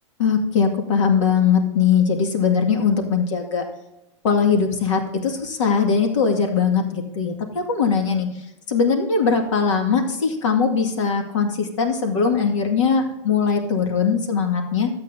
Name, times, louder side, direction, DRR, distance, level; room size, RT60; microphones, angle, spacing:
voice 1, 0.2-3.6 4.2-8.3 8.7-14.9, left 6 dB, 80° left, 3 dB, 2.0 m, -20 dB
12.5 x 8.1 x 2.7 m, 0.95 s
supercardioid pair, 155°, 16 cm